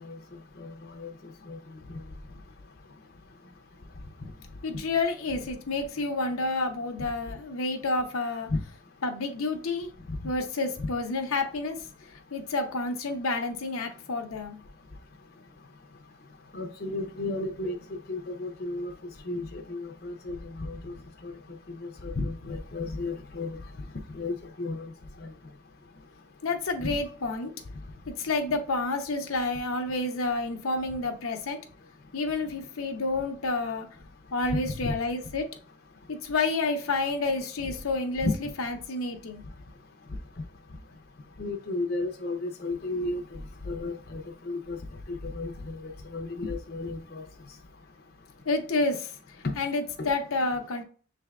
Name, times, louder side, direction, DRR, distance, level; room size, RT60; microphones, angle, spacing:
voice 1, 4.6-8.5 9.0-9.9 10.2-11.8 12.3-14.6 26.4-27.5 28.1-31.6 32.1-33.9 34.3-35.5 36.1-38.3 38.6-39.4 48.4-49.1 49.6-50.8, left 3 dB, 85° left, 4 dB, 0.7 m, -29 dB
voice 2, 16.5-17.8 18.1-18.9 19.3-20.4 20.7-20.9 21.2-21.3 22.0-23.5 24.1-24.8 26.8-27.0 34.5-34.9 38.2-38.3 41.4-43.2 43.7-44.2 44.5-44.8 45.3-45.5 46.1-47.2 49.4-49.5 50.0-50.1, left 2 dB, 45° left, 2 dB, 0.5 m, -32 dB
6.5 x 3.4 x 2.3 m, 0.40 s
head